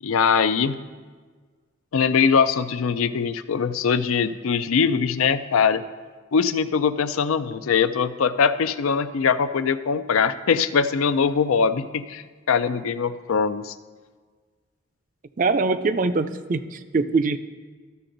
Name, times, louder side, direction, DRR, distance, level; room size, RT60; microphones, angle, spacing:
voice 1, 0.0-0.8 1.9-5.8 6.3-13.7, left 6 dB, 85° left, 12 dB, 0.4 m, -22 dB
voice 2, 15.4-17.4, right 3 dB, 40° right, 11 dB, 0.4 m, -23 dB
13.0 x 6.7 x 3.9 m, 1.5 s
head